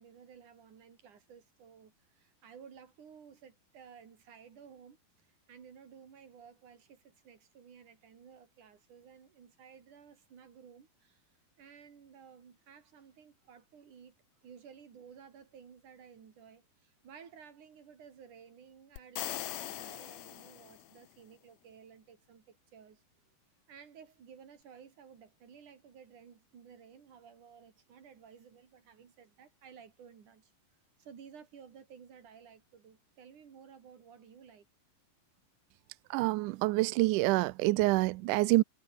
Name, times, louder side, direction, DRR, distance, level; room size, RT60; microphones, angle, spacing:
voice 1, 0.0-11.2 11.6-14.2 14.4-23.0 23.7-30.5 31.0-34.7 35.8-35.9, right 7 dB, 55° right, 4.5 m, -55 dB
sound 1, 19.0-21.0, left 15 dB, 80° left, 1.5 m, -41 dB
voice 2, 36.1-38.6, right 20 dB, 85° right, 1.8 m, -27 dB
omnidirectional pair, 4.3 m